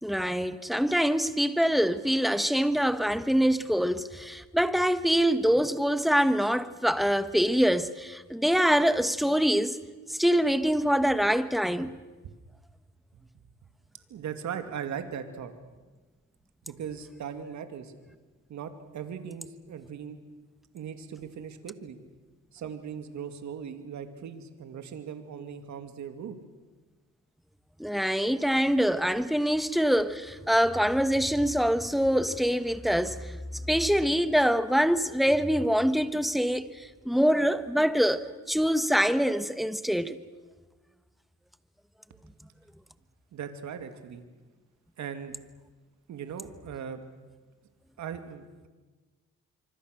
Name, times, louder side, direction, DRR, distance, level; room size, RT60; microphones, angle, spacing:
voice 1, 0.0-9.8 10.1-11.9 27.8-33.4 33.7-36.7 37.0-40.2, equal, ahead, 1.3 m, -25 dB
voice 2, 14.1-15.5 16.6-17.9 18.5-20.2 20.7-22.0 22.5-26.4 43.3-44.2 45.0-45.4 46.1-47.0 48.0-48.7, right 7 dB, 70° right, 2.4 m, -39 dB
25.5 x 25.0 x 6.6 m
cardioid pair, 90°, 30 cm